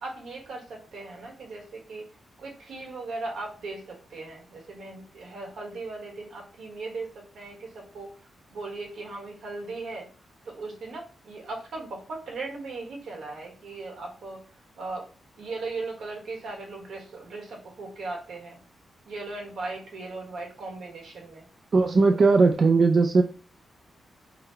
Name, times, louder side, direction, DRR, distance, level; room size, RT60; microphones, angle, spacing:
voice 1, 0.0-2.1 2.4-8.1 8.5-10.1 10.4-14.4 14.8-15.1 15.4-18.6 19.0-21.5 22.1-22.2, right 3 dB, 80° right, 1 dB, 1.2 m, -38 dB
voice 2, 21.7-23.2, right 4 dB, 45° right, 4 dB, 0.3 m, -18 dB
3.8 x 2.1 x 4.4 m, 0.38 s
wide cardioid pair, 120°, 0 cm